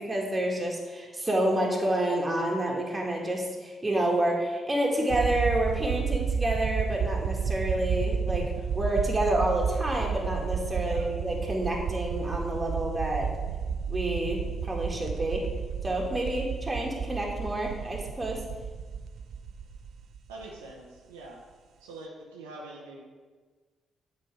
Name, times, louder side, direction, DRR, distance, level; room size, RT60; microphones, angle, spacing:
voice 1, 0.1-8.5 8.8-13.3 13.9-15.4 15.8-18.4, right 1 dB, 25° right, -1 dB, 1.9 m, -29 dB
sound 1, 5.1-20.7, right 6 dB, 65° right, 0.3 m, -31 dB
voice 2, 10.7-11.1 20.3-21.4 21.8-23.0, right 2 dB, 90° right, -2 dB, 0.8 m, -44 dB
7.8 x 4.2 x 4.8 m, 1.4 s
hypercardioid pair, 45°, 0 cm